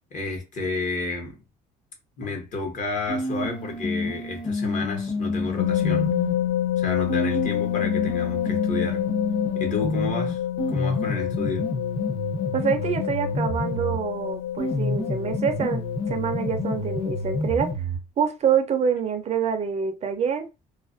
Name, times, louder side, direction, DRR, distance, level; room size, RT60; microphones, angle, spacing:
voice 1, 0.1-1.4 2.2-6.1 6.8-9.0 9.5-10.4 10.7-11.7, left 3 dB, 50° left, 1.0 m, -31 dB
sound 1, 3.1-6.4 7.1-14.0 14.6-18.0, left 2 dB, 30° left, 0.7 m, -29 dB
sound 2, 5.6-17.7, left 12 dB, 70° left, 0.4 m, -28 dB
voice 2, 12.5-15.8 16.1-17.7 18.2-20.5, right 7 dB, 40° right, 0.4 m, -26 dB
2.4 x 2.1 x 2.5 m
cardioid pair, 110°, 17 cm